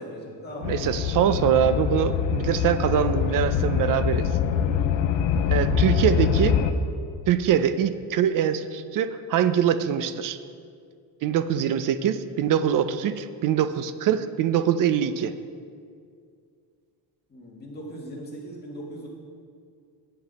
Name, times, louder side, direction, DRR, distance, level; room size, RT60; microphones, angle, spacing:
voice 1, 0.0-0.8 5.3-5.5 17.3-19.1, equal, 25° left, -4 dB, 2.0 m, -39 dB
sound 1, 0.6-6.7, left 7 dB, 85° left, 0.7 m, -24 dB
voice 2, 0.6-4.3 5.5-6.6 7.3-10.4 11.2-15.3, right 9 dB, 50° right, 12 dB, 0.5 m, -23 dB
10.5 x 8.0 x 4.1 m, 2.2 s
cardioid pair, 155°, 42 cm